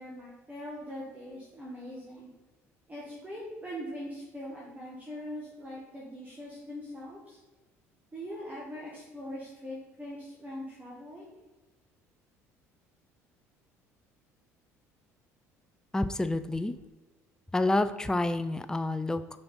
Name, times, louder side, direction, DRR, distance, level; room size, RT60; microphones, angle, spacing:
voice 1, 0.0-2.3 2.9-7.4 8.1-11.3, equal, 20° right, -5 dB, 1.8 m, -41 dB
voice 2, 15.9-16.8 17.5-19.4, left 2 dB, 10° left, 11 dB, 0.4 m, -28 dB
6.0 x 5.2 x 4.1 m, 1.2 s
hypercardioid pair, 60°, 8 cm